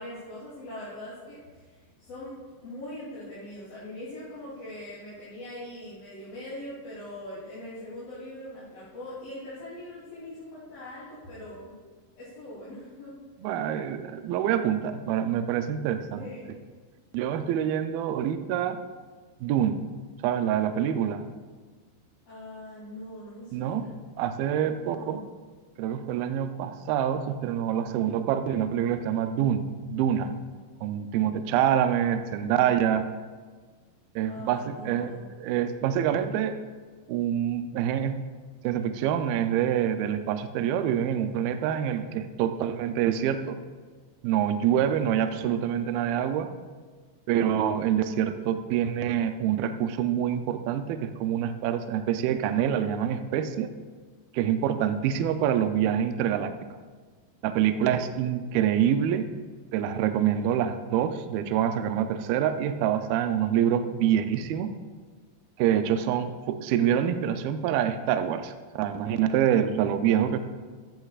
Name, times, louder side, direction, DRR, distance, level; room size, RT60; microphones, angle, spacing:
voice 1, 0.0-11.7 12.2-13.1 16.1-16.6 22.3-24.0 24.8-25.2 34.2-35.3 44.9-45.0 54.8-55.4 57.8-58.3, left 1 dB, 55° left, -12 dB, 4.8 m, -42 dB
voice 2, 13.4-16.3 17.1-18.8 19.4-19.8 20.2-21.2 23.5-23.8 24.2-25.2 25.8-30.3 30.8-33.1 34.2-35.1 35.4-36.6 37.1-38.2 38.6-43.6 44.2-46.5 47.3-53.7 54.3-56.5 57.4-59.3 59.7-64.7 65.6-70.4, right 9 dB, 85° right, 8 dB, 2.1 m, -26 dB
14.5 x 13.5 x 2.4 m, 1.5 s
omnidirectional pair, 5.1 m